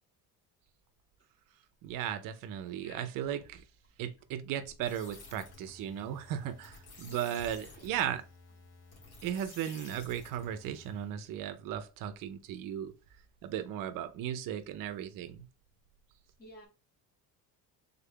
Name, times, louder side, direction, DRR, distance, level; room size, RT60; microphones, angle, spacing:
voice 1, 1.8-3.6 4.0-8.2 9.2-12.9 13.4-15.5, right 10 dB, 65° right, 0.5 m, -36 dB
sound 1, 4.8-11.2, left 3 dB, 90° left, 1.7 m, -53 dB
voice 2, 7.1-8.2 16.4-16.7, left 1 dB, 25° left, 0.8 m, -53 dB
3.6 x 2.3 x 3.5 m
cardioid pair, 170°, 36 cm